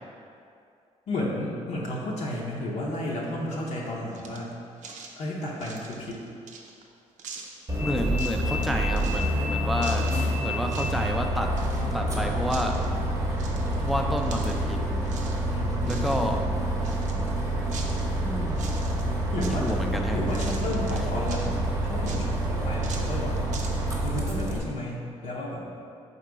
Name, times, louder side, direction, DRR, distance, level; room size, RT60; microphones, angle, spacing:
voice 1, 1.1-4.5 5.1-6.3 15.5-16.8 19.3-19.7 20.1-23.4 24.0-25.7, left 1 dB, 70° left, -4 dB, 0.7 m, -32 dB
sound 1, 4.1-4.5 4.8-5.1 5.6-6.8 7.2-7.6 8.1-8.7 8.9-9.3 9.8-10.3 10.6-11.0 11.2-12.1 12.4-12.9 13.4-14.7 15.0-15.4 15.7-16.3 16.8-18.2 18.5-19.0 19.4-20.0 20.3-21.5 22.0-23.7, right 5 dB, 75° right, 0.5 m, -43 dB
Bus, 7.7-24.6, right 1 dB, 25° right, 0.8 m, -27 dB
voice 2, 7.8-11.5 11.9-12.8 13.8-14.8 15.9-16.4 18.3-18.6 19.4-20.2, equal, ahead, 2 dB, 0.4 m, -30 dB
3.8 x 2.9 x 4.6 m, 2.4 s
cardioid pair, 85°, 13 cm